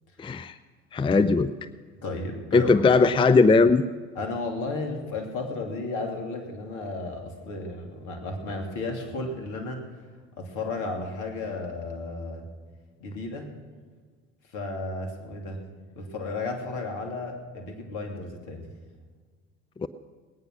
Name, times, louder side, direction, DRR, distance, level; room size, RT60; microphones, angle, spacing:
voice 1, 0.2-0.5 0.9-1.5 2.5-3.8 19.8-19.9, left 4 dB, 15° left, 14 dB, 0.5 m, -19 dB
voice 2, 2.0-2.7 4.1-9.8 10.4-12.5 13.0-13.5 14.5-15.6 16.0-18.7, left 3 dB, 60° left, 3 dB, 3.1 m, -33 dB
19.5 x 9.6 x 6.2 m, 1.5 s
hypercardioid pair, 70°, 35 cm